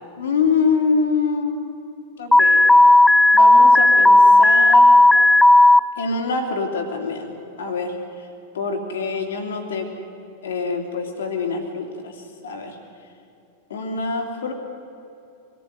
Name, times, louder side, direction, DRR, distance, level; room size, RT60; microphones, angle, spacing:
voice 1, 0.2-1.7 2.2-2.6 3.3-4.9 6.0-7.3 7.6-7.9 8.5-9.9 10.4-12.1 12.4-12.8 13.7-14.5, left 4 dB, 65° left, 4 dB, 2.9 m, -25 dB
Alarm, 2.3-5.8, left 2 dB, 5° left, 0.4 m, -12 dB
23.5 x 14.5 x 9.5 m, 2.7 s
figure-of-eight pair, 90°, 0 cm